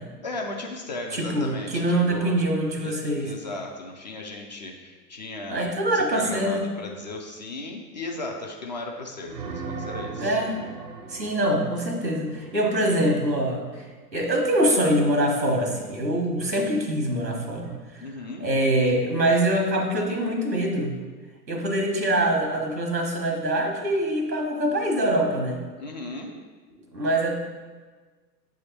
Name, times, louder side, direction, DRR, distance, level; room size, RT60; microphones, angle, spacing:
voice 1, 0.2-2.4 2.8-5.6 5.9-10.4 18.0-18.5 25.8-26.3, left 2 dB, 30° left, 1 dB, 0.4 m, -36 dB
voice 2, 1.1-3.3 5.5-6.6 10.1-10.6 11.1-13.9 14.1-18.1 18.4-20.9 21.5-25.6 26.9-27.4, right 1 dB, 90° right, 1 dB, 1.3 m, -24 dB
sound 1, 9.2-13.1 17.6-17.8, right 4 dB, 75° right, 0.8 m, -38 dB
7.8 x 3.5 x 4.4 m, 1.4 s
figure-of-eight pair, 100°, 50 cm